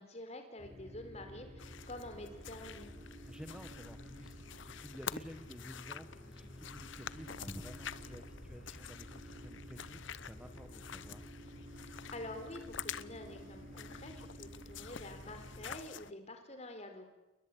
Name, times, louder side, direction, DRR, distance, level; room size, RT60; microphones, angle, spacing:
voice 1, 0.0-2.9 12.1-17.1, left 1 dB, 30° left, 7 dB, 4.3 m, -47 dB
sound 1, 0.6-15.7, equal, 35° right, 5.5 m, -52 dB
sound 2, 1.6-16.1, left 8 dB, 65° left, 0.9 m, -48 dB
voice 2, 3.3-11.3, equal, 5° right, 6 dB, 1.4 m, -51 dB
29.5 x 21.5 x 8.7 m, 1.0 s
head